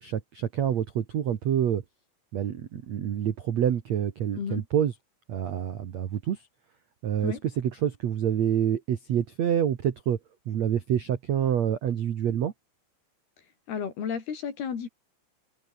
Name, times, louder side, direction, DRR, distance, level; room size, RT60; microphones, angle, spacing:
voice 1, 0.0-1.8 2.3-4.9 5.3-6.5 7.0-10.2 10.4-12.5, right 9 dB, 80° right, 1.5 m, -27 dB
voice 2, 13.7-14.9, left 7 dB, 55° left, 5.3 m, -32 dB
omnidirectional pair, 5.6 m